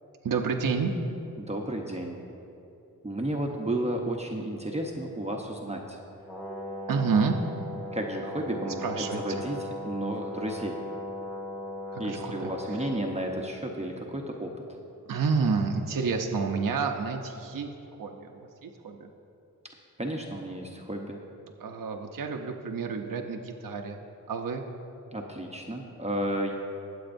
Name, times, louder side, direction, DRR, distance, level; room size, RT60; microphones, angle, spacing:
voice 1, 0.2-0.9 6.9-7.4 8.8-9.2 11.9-13.0 15.1-17.7 18.0-19.1 21.6-24.0 24.3-24.6, right 5 dB, 70° right, 2 dB, 0.8 m, -29 dB
voice 2, 1.4-2.2 3.0-6.0 7.9-9.6 9.8-10.8 12.0-14.8 20.0-21.2 25.1-26.5, right 1 dB, 20° right, 1 dB, 0.8 m, -32 dB
Brass instrument, 6.3-13.3, left 1 dB, 5° left, 1.7 m, -38 dB
21.5 x 7.9 x 2.6 m, 2.8 s
wide cardioid pair, 80°, 34 cm